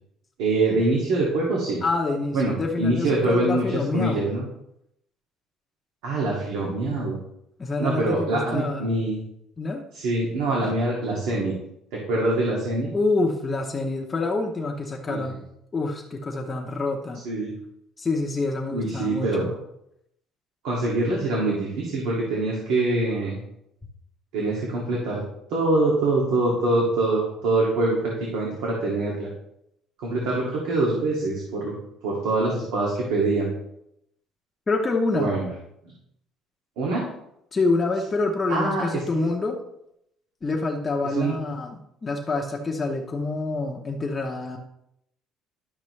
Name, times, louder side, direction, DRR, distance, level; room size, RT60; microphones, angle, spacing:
voice 1, 0.4-1.8 2.3-4.5 6.0-7.2 7.8-9.2 9.9-11.6 11.9-12.9 15.1-15.2 17.2-17.5 18.7-19.5 20.6-23.4 24.3-25.2 25.5-29.3 30.0-31.7 32.0-33.5 35.1-35.5 36.8-37.1 38.5-39.3 41.1-41.4, right 2 dB, 85° right, -3 dB, 2.2 m, -24 dB
voice 2, 1.8-4.3 7.6-8.9 9.6-9.8 12.9-15.4 15.7-17.2 18.0-19.6 34.7-35.4 37.5-39.6 40.4-44.6, left 3 dB, 15° left, 0 dB, 0.8 m, -27 dB
12.0 x 6.4 x 3.2 m, 0.78 s
cardioid pair, 175°, 0 cm